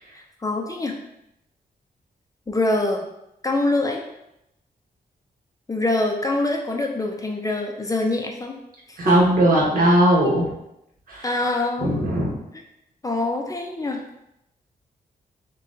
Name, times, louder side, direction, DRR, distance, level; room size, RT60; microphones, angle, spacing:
voice 1, 0.1-0.9 2.5-3.1 3.4-4.0 5.7-8.6 8.9-9.2 10.2-10.4 11.2-12.0 13.0-14.0, left 2 dB, 20° left, 1 dB, 0.5 m, -24 dB
voice 2, 9.0-10.4 11.1-11.3 11.8-12.4, right 1 dB, 65° right, -3 dB, 1.2 m, -18 dB
6.7 x 2.3 x 2.7 m, 0.84 s
wide cardioid pair, 110°, 16 cm